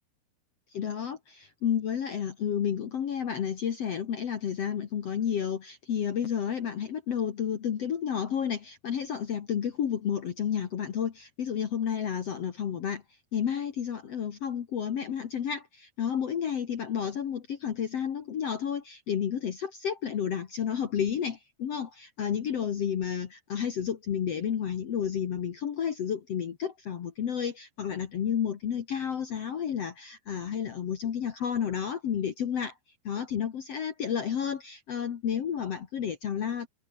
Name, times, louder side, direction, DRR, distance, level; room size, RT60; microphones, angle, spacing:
voice 1, 0.7-13.0 13.3-32.7 33.0-36.7, left 8 dB, 65° left, 1.6 m, -31 dB
omnidirectional pair, 5.2 m